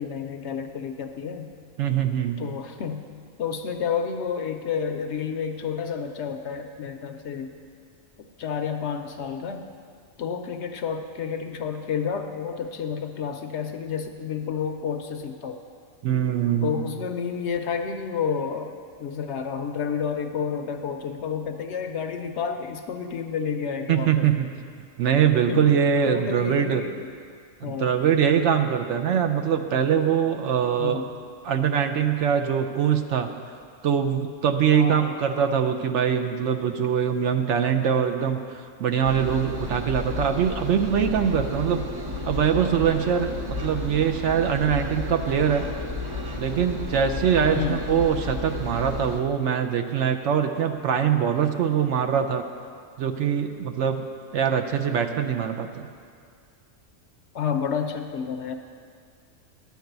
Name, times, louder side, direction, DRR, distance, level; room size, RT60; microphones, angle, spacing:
voice 1, 0.0-1.5 2.4-3.1 3.4-7.5 8.2-9.7 10.2-15.6 16.6-24.3 25.5-25.8 26.1-27.0 27.6-27.9 30.8-31.1 34.7-35.2 47.5-47.9 57.3-58.5, left 6 dB, 65° left, 6 dB, 0.8 m, -30 dB
voice 2, 1.8-2.4 16.0-16.9 23.9-24.5 25.0-26.8 27.6-31.0 31.4-33.3 33.8-41.9 42.3-45.7 46.4-52.4 53.0-54.0 54.3-55.9, right 8 dB, 70° right, 6 dB, 0.8 m, -23 dB
Engine, 39.0-49.2, left 2 dB, 35° right, 0.4 m, -32 dB
10.5 x 4.7 x 7.9 m, 2.2 s
omnidirectional pair, 1.4 m